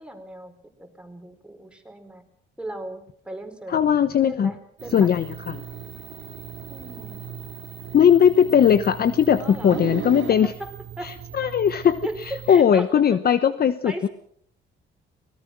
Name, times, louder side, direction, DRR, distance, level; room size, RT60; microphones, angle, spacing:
voice 1, 0.0-2.2 2.6-3.8 4.2-5.1 6.7-7.2 9.3-9.8 10.4-11.1 12.0-13.2 13.8-14.1, right 1 dB, 5° right, 4 dB, 4.9 m, -37 dB
voice 2, 3.7-4.5 4.9-5.6 7.9-10.5 11.0-12.0 12.5-14.1, left 8 dB, 50° left, 13 dB, 1.0 m, -19 dB
sound 1, 4.8-12.6, right 10 dB, 80° right, 2.2 m, -37 dB
24.0 x 19.0 x 6.1 m, 0.65 s
cardioid pair, 90°, 20 cm